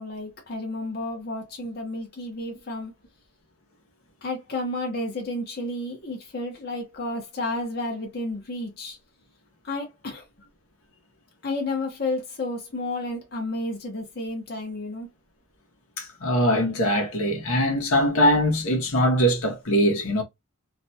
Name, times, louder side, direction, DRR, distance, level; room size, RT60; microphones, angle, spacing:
voice 1, 0.0-2.9 4.2-9.0 9.6-10.3 11.4-15.1, left 2 dB, 45° left, 0.8 m, -31 dB
voice 2, 16.0-20.2, equal, 75° left, 0.9 m, -22 dB
2.5 x 2.2 x 2.6 m
head